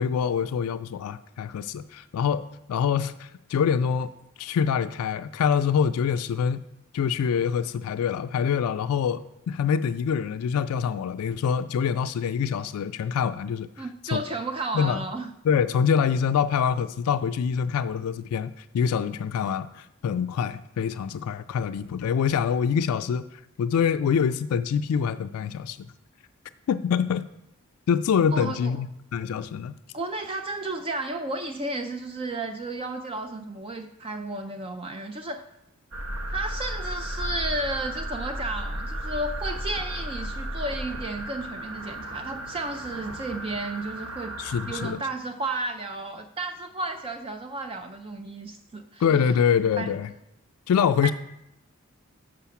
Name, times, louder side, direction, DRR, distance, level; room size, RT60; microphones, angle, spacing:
voice 1, 0.0-2.4 2.7-4.1 4.4-6.6 6.9-14.2 14.7-15.0 15.4-25.9 26.7-27.3 27.9-29.7 44.4-45.0 49.0-50.1 50.7-51.1, left 7 dB, 85° left, 11 dB, 0.3 m, -25 dB
voice 2, 13.8-15.3 28.3-28.7 29.9-35.4 36.3-44.3 44.7-49.0 49.8-49.9 51.0-51.1, right 2 dB, 25° right, 6 dB, 0.3 m, -33 dB
sound 1, 35.9-44.9, right 1 dB, 65° right, 1.2 m, -34 dB
7.0 x 5.0 x 5.7 m, 0.84 s
head